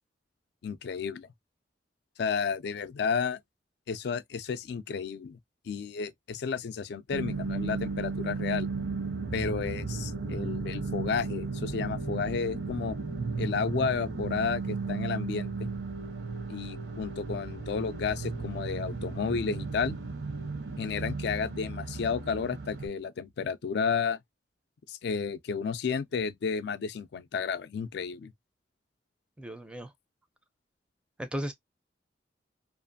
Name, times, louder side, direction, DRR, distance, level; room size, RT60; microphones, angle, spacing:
voice 1, 0.6-1.3 2.2-3.4 3.9-5.4 5.7-8.7 9.3-13.0 13.4-15.7 16.5-20.0 20.8-24.2 24.9-28.3, left 5 dB, 60° left, 0.4 m, -32 dB
sound 1, 7.1-22.9, right 4 dB, 65° right, 0.7 m, -35 dB
voice 2, 29.4-29.9 31.2-31.5, equal, 5° right, 0.4 m, -35 dB
2.5 x 2.4 x 2.5 m
head